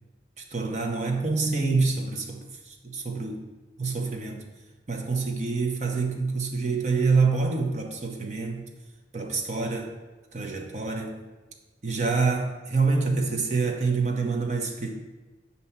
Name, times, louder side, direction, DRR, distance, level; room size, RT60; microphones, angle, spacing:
voice 1, 0.5-3.5 3.8-4.5 4.9-8.7 9.1-9.9 10.3-11.3 11.8-14.9, right 4 dB, 40° right, 2 dB, 0.7 m, -26 dB
6.5 x 2.8 x 5.6 m, 1.2 s
head